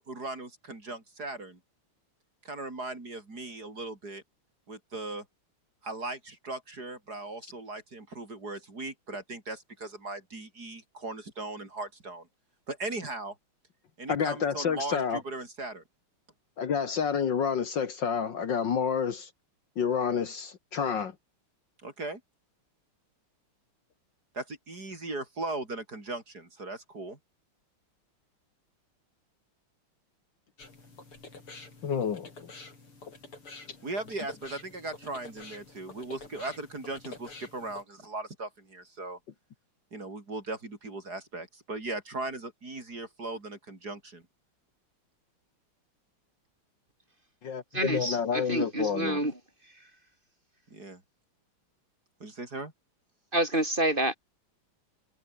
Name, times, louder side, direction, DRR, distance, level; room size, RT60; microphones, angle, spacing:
voice 1, 0.0-1.6 2.4-4.2 4.7-5.2 5.8-12.3 12.7-13.3 14.0-15.8 21.8-22.2 24.3-27.2 33.8-39.2 39.9-44.2 50.7-51.0 52.2-52.7, right 2 dB, 45° right, 5.1 m, -38 dB
voice 2, 14.1-15.2 16.6-19.3 19.8-21.2 31.8-32.5 33.7-33.8 47.4-49.2, left 6 dB, 60° left, 2.1 m, -29 dB
sound 1, 30.6-37.8, left 3 dB, 80° left, 6.6 m, -48 dB
voice 3, 47.7-49.3 53.3-54.2, right 1 dB, 20° right, 6.5 m, -28 dB
omnidirectional pair, 2.4 m